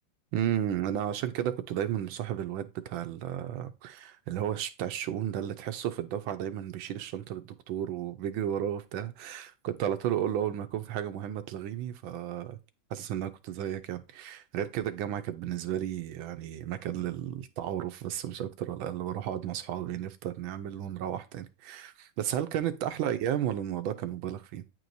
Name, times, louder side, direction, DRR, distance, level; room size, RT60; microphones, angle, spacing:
voice 1, 0.3-12.6 12.9-24.6, right 10 dB, 75° right, 1.4 m, -33 dB
9.2 x 4.6 x 2.6 m
omnidirectional pair, 2.2 m